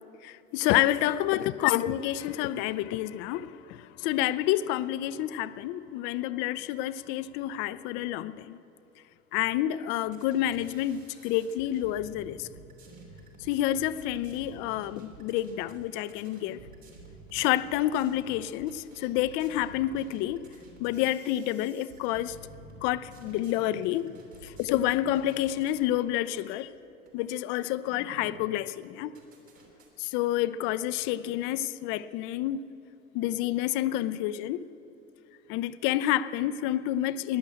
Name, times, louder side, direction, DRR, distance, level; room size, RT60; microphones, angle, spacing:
voice 1, 0.2-8.6 9.3-12.5 13.4-16.6 17.3-20.5 20.8-22.4 22.8-26.7 27.1-29.2 30.0-32.7 33.1-34.7 35.5-37.4, left 13 dB, 30° left, 0.4 m, -29 dB
sound 1, 10.1-25.9 26.2-26.4 27.1-27.2 27.5-28.5 28.8-29.9, right 2 dB, 75° right, 3.2 m, -51 dB
16.5 x 10.5 x 7.8 m
figure-of-eight pair, 85°, 40 cm